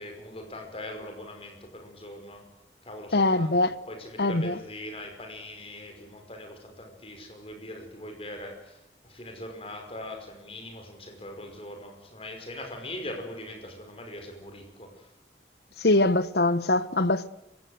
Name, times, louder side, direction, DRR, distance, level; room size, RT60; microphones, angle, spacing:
voice 1, 0.0-2.4 2.8-15.1, left 1 dB, 30° left, 5.3 m, -41 dB
voice 2, 3.1-3.7 4.2-4.5 15.8-17.3, left 2 dB, 65° left, 1.1 m, -23 dB
26.5 x 16.5 x 7.9 m
head